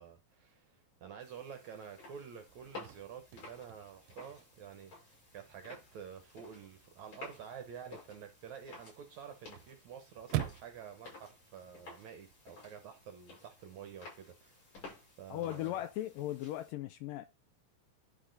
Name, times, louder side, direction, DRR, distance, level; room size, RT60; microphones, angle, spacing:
voice 1, 0.0-14.8 15.2-15.8, right 7 dB, 70° right, 1.8 m, -49 dB
sound 1, 1.2-16.7, left 3 dB, 50° left, 7.2 m, -54 dB
Chirp tweet / Car / Slam, 2.5-12.5, right 14 dB, 85° right, 2.6 m, -46 dB
voice 2, 15.3-17.3, left 14 dB, 80° left, 2.0 m, -38 dB
11.5 x 4.6 x 3.9 m
omnidirectional pair, 4.4 m